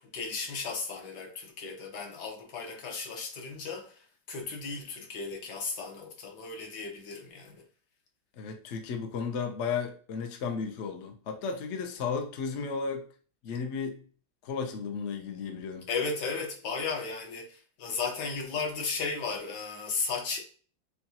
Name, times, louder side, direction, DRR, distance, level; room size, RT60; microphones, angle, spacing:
voice 1, 0.0-7.6 15.9-20.4, left 4 dB, 60° left, 1.5 m, -35 dB
voice 2, 8.4-13.1 13.4-14.0 14.4-15.9, left 5 dB, 80° left, 0.6 m, -34 dB
6.8 x 2.3 x 2.8 m
omnidirectional pair, 2.2 m